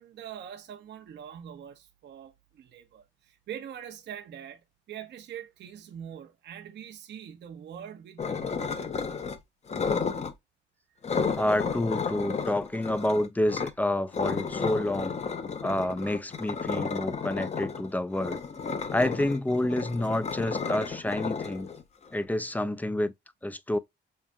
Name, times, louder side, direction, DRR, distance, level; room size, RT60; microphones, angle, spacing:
voice 1, 0.0-9.3, right 9 dB, 60° right, 0.7 m, -44 dB
sound 1, 8.2-9.4 9.7-10.3 11.0-13.7 14.1-22.2, left 5 dB, 35° left, 0.7 m, -32 dB
voice 2, 11.4-15.1 15.6-18.4 18.9-21.7 22.1-23.1 23.4-23.8, left 1 dB, 10° left, 0.3 m, -28 dB
5.5 x 2.4 x 2.3 m
cardioid pair, 90°, 20 cm